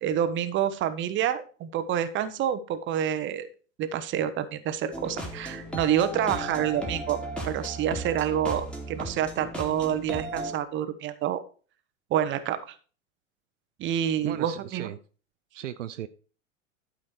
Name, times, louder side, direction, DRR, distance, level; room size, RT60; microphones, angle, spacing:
voice 1, 0.0-3.5 3.8-7.2 7.4-11.4 12.1-12.7 13.8-14.9, right 10 dB, 30° right, 11 dB, 1.0 m, -28 dB
sound 1, 4.9-10.5, right 1 dB, 5° left, 2.3 m, -36 dB
voice 2, 14.2-15.0 15.5-16.1, right 11 dB, 65° right, 11 dB, 0.7 m, -36 dB
12.0 x 5.1 x 4.5 m, 0.38 s
figure-of-eight pair, 90°, 39 cm